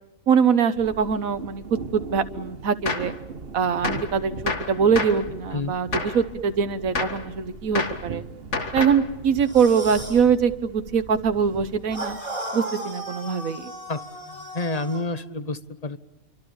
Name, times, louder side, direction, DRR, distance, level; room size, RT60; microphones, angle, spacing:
voice 1, 0.3-3.1 3.5-8.2 8.7-12.2 12.5-13.7, right 6 dB, 90° right, 10 dB, 1.6 m, -23 dB
sound 1, 0.7-12.2, right 4 dB, 45° right, 1.5 m, -40 dB
Gunshot gunfire, 2.9-3.2 3.8-4.1 4.5-5.3 5.9-6.2 6.9-7.3 7.8-8.1 8.5-9.1, left 3 dB, 60° left, 2.3 m, -28 dB
sound 2, 9.4-10.3 11.9-15.1, right 1 dB, 25° right, 5.6 m, -35 dB
voice 2, 13.9-16.0, left 2 dB, 30° left, 12 dB, 1.2 m, -30 dB
28.5 x 24.5 x 7.1 m, 1.0 s
omnidirectional pair, 1.4 m